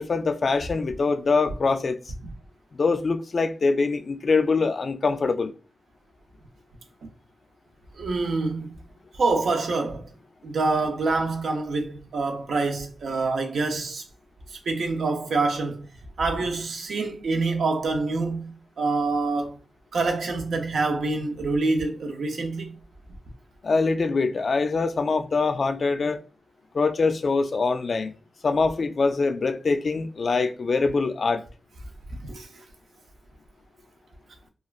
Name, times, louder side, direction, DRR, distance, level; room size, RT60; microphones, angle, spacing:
voice 1, 0.0-2.0 2.7-5.5 23.6-26.2 26.7-28.1 28.4-31.4, left 4 dB, 55° left, 0.3 m, -24 dB
voice 2, 7.9-8.7 9.2-10.1 10.4-14.0 14.5-15.9 16.2-18.5 18.8-19.6 19.9-22.8 32.3-32.5, right 3 dB, 85° right, 0.5 m, -26 dB
3.0 x 2.3 x 2.3 m
wide cardioid pair, 95°, 0 cm